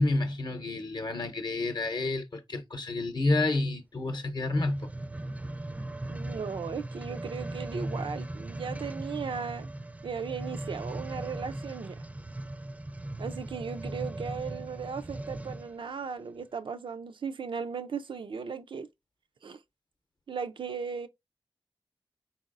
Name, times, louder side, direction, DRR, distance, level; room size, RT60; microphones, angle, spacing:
voice 1, 0.0-4.9, left 2 dB, 60° left, 0.7 m, -29 dB
sound 1, 4.4-15.8 16.4-16.5, right 1 dB, 15° right, 0.4 m, -38 dB
voice 2, 6.1-9.7 10.0-12.0 13.2-18.9 19.4-19.6 20.3-21.1, right 6 dB, 85° right, 0.4 m, -37 dB
4.1 x 3.9 x 2.5 m
cardioid pair, 55°, 8 cm